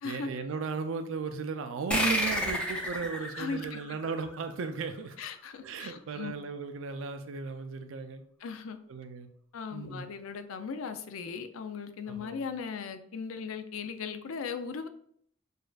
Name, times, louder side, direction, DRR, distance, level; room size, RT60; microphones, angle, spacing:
voice 1, 0.0-5.2 5.6-8.2 8.9-9.3 9.7-10.1 12.1-12.4, right 5 dB, 70° right, 8 dB, 0.4 m, -36 dB
sound 1, 1.9-4.9, equal, 5° left, 0.6 m, -31 dB
voice 2, 3.4-3.8 5.2-6.3 8.4-8.8 9.5-14.9, left 5 dB, 85° left, 9 dB, 0.4 m, -38 dB
6.4 x 2.5 x 2.3 m, 0.65 s
head